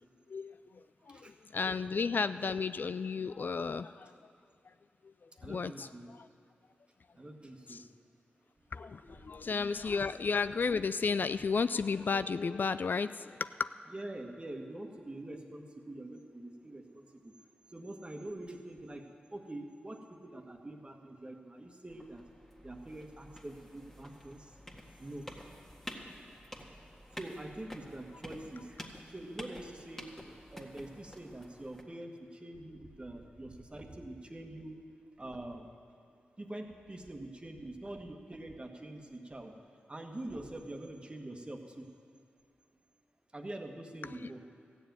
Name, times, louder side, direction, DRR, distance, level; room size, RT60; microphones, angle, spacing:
voice 1, 0.3-4.1 5.2-5.9 6.2-6.3 7.7-7.8 8.7-13.7, left 5 dB, 55° left, 13 dB, 0.3 m, -33 dB
voice 2, 5.4-6.1 7.1-7.8 9.2-9.4 13.9-17.3 17.7-22.2 22.6-24.6 25.0-25.3 27.1-30.1 30.5-34.8 35.2-35.7 36.4-39.5 39.9-41.9 43.3-44.4, right 1 dB, 25° right, 3 dB, 1.5 m, -45 dB
sound 1, 21.9-31.8, equal, 10° left, 1.8 m, -50 dB
14.0 x 7.1 x 9.3 m, 2.3 s
cardioid pair, 45°, 4 cm